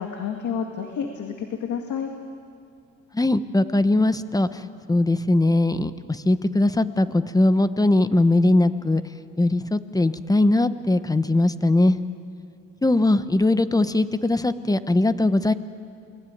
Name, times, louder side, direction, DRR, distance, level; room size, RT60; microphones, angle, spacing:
voice 1, 0.0-2.1, left 7 dB, 75° left, 4 dB, 2.1 m, -29 dB
voice 2, 3.1-9.0 9.4-12.0 12.8-15.5, left 2 dB, 10° left, 12 dB, 1.1 m, -20 dB
29.0 x 21.0 x 9.5 m, 2.4 s
cardioid pair, 90°, 30 cm